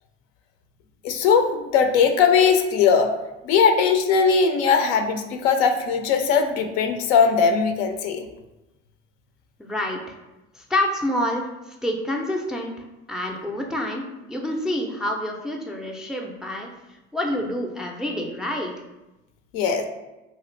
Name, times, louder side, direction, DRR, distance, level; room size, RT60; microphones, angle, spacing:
voice 1, 1.0-3.1 3.4-8.2 19.5-19.8, left 6 dB, 75° left, 6 dB, 0.5 m, -19 dB
voice 2, 9.6-10.2 10.6-12.7 13.1-16.7 17.1-18.7, left 1 dB, ahead, 0 dB, 0.3 m, -27 dB
2.9 x 2.4 x 3.1 m, 1.0 s
hypercardioid pair, 75°, 34 cm